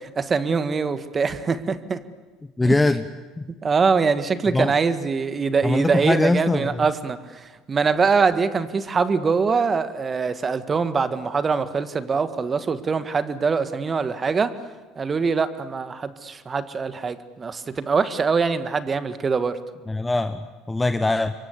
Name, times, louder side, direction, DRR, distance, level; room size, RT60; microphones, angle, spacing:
voice 1, 0.0-2.0 2.6-2.7 3.6-7.2 7.7-14.5 15.0-19.6, right 5 dB, 30° right, 12 dB, 1.9 m, -23 dB
voice 2, 2.6-3.1 3.4-3.5 4.5-4.7 5.6-6.9 19.9-21.3, left 2 dB, 15° left, 10 dB, 1.3 m, -22 dB
28.0 x 23.5 x 8.4 m, 1.3 s
hypercardioid pair, 70°, 0 cm